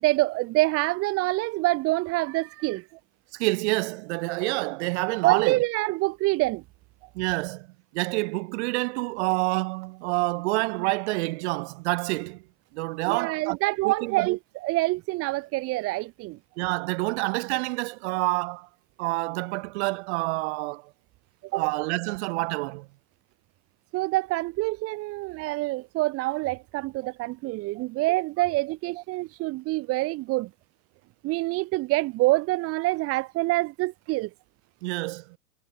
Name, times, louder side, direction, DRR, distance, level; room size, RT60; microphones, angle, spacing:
voice 1, 0.0-2.9 5.2-6.6 13.1-16.4 21.5-21.6 23.9-30.5 31.2-34.3, right 21 dB, 30° right, 1.3 m, -26 dB
voice 2, 3.3-5.6 7.1-7.7 7.9-12.4 12.7-13.6 13.8-14.4 16.6-18.7 19.0-20.9 21.5-22.9 27.8-27.9 34.8-35.4, right 25 dB, 50° right, 2.1 m, -28 dB
hypercardioid pair, 125°, 44 cm